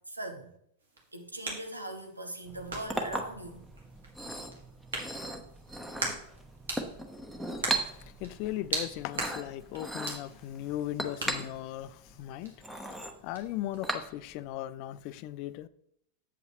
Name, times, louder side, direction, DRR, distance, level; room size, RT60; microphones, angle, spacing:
voice 1, 0.1-0.5 1.1-3.7, right 1 dB, 85° right, 1.1 m, -40 dB
sound 1, 0.8-14.0, right 2 dB, 65° right, 2.2 m, -42 dB
Chink clink, 2.5-14.5, right 2 dB, 5° right, 0.9 m, -38 dB
voice 2, 7.6-13.0 13.2-15.7, left 13 dB, 45° left, 0.4 m, -38 dB
8.1 x 7.9 x 3.1 m
figure-of-eight pair, 90°, 0 cm